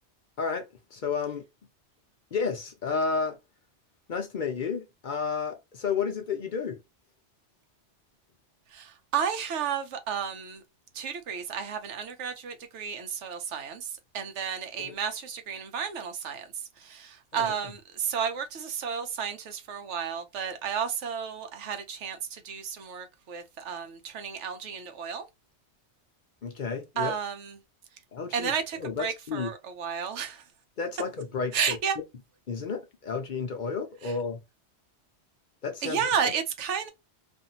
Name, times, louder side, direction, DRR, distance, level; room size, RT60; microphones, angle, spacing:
voice 1, 0.4-1.4 2.3-3.4 4.1-6.8 14.8-15.0 17.3-17.5 26.4-27.1 28.1-29.5 30.8-31.8 32.5-34.4 35.6-36.1, left 5 dB, 50° left, 0.7 m, -32 dB
voice 2, 8.7-10.6 10.9-13.9 14.1-16.5 16.8-25.2 27.0-27.6 28.3-30.4 31.5-31.9 35.8-36.9, right 7 dB, 85° right, 1.0 m, -32 dB
2.6 x 2.5 x 2.7 m
omnidirectional pair, 1.2 m